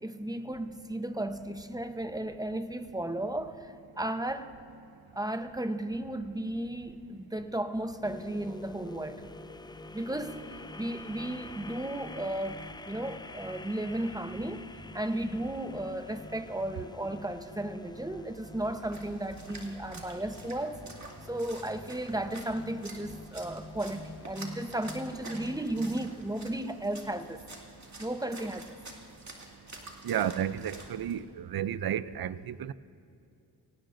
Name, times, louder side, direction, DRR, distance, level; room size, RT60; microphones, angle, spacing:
voice 1, 0.0-4.5 5.1-9.2 9.9-10.4 10.7-12.6 12.9-14.7 14.9-20.8 21.3-27.4 28.0-28.7, right 1 dB, 10° right, 0.8 m, -34 dB
sound 1, 8.0-26.2, left 2 dB, 10° left, 0.3 m, -47 dB
Splash splatter, 18.4-31.2, right 2 dB, 40° right, 2.3 m, -49 dB
voice 2, 30.0-32.7, right 10 dB, 60° right, 0.5 m, -32 dB
24.0 x 18.0 x 2.6 m
cardioid pair, 55°, 43 cm